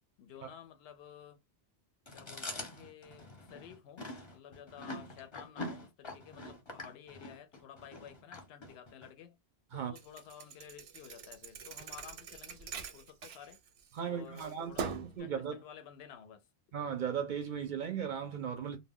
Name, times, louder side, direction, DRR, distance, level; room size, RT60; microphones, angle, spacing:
voice 1, 0.2-1.4 2.1-4.0 4.3-9.4 9.7-13.6 14.0-16.4, left 9 dB, 75° left, 0.8 m, -53 dB
Chewing mastication, 2.1-9.1, left 2 dB, 30° left, 0.7 m, -45 dB
Thump thud, 10.0-14.0 14.4-15.2, right 6 dB, 85° right, 0.9 m, -43 dB
voice 2, 13.9-14.7 15.2-15.6 16.7-18.8, right 8 dB, 60° right, 0.6 m, -36 dB
2.2 x 2.2 x 3.5 m
omnidirectional pair, 1.1 m